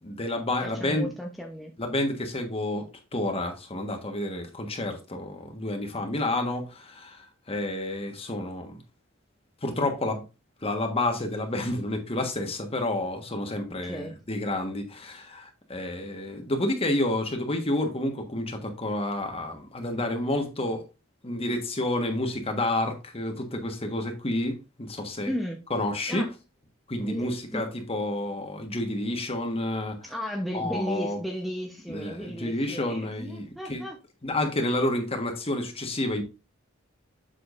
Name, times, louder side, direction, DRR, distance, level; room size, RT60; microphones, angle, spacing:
voice 1, 0.0-1.1 1.8-2.9 3.1-8.8 9.6-10.2 10.6-20.8 21.2-25.3 25.7-26.3 26.9-30.1 30.5-31.2 31.9-33.8 34.2-36.2, left 1 dB, 30° left, 1.4 m, -29 dB
voice 2, 0.6-1.7 13.8-14.1 25.3-25.6 26.1-26.3 27.1-27.7 30.0-34.0, equal, ahead, 0.9 m, -34 dB
7.7 x 6.2 x 2.5 m
head